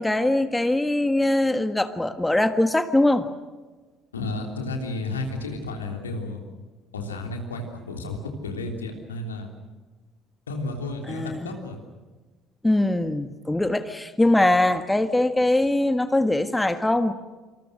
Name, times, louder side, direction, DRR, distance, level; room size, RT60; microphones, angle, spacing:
voice 1, 0.0-3.3 11.1-11.5 12.6-17.1, left 1 dB, 10° left, 10 dB, 1.5 m, -22 dB
voice 2, 4.1-6.4 6.9-8.2 8.4-9.5 10.5-11.8, left 2 dB, 80° left, 3 dB, 3.2 m, -32 dB
26.5 x 26.5 x 6.4 m, 1.3 s
figure-of-eight pair, 55°, 0 cm